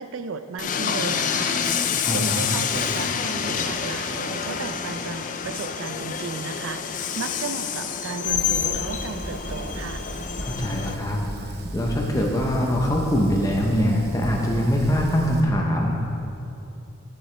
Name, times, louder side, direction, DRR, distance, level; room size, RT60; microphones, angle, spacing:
voice 1, 0.0-1.6 2.1-10.0, right 5 dB, 75° right, 10 dB, 0.4 m, -34 dB
Train, 0.6-10.9, left 7 dB, 40° left, 0.3 m, -27 dB
voice 2, 2.0-2.5 10.4-15.9, equal, 15° left, -1 dB, 0.7 m, -23 dB
Fire, 8.3-15.4, right 1 dB, 50° right, 0.9 m, -35 dB
11.0 x 6.9 x 3.3 m, 2.8 s
head